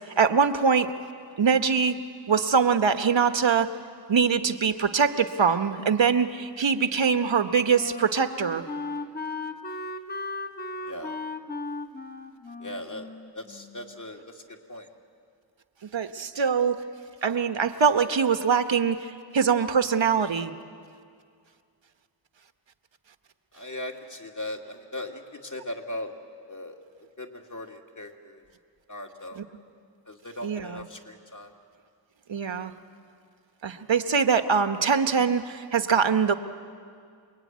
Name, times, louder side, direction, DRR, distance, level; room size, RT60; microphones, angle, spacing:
voice 1, 0.2-0.9 1.4-2.0 2.3-3.7 4.1-8.6 15.9-16.8 17.2-20.5 29.4-29.5 30.4-30.9 32.3-32.7 33.6-36.3, right 6 dB, 70° right, 9 dB, 1.3 m, -23 dB
Wind instrument woodwind instrument, 6.7-14.0, left 3 dB, 20° left, 1.6 m, -37 dB
voice 2, 10.8-11.2 12.6-13.1 13.3-14.9 23.5-26.1 26.5-26.7 27.2-28.4 28.9-29.4 30.1-31.5, left 1 dB, 40° left, 2 dB, 3.1 m, -38 dB
28.0 x 21.5 x 9.5 m, 2.2 s
wide cardioid pair, 60°, 47 cm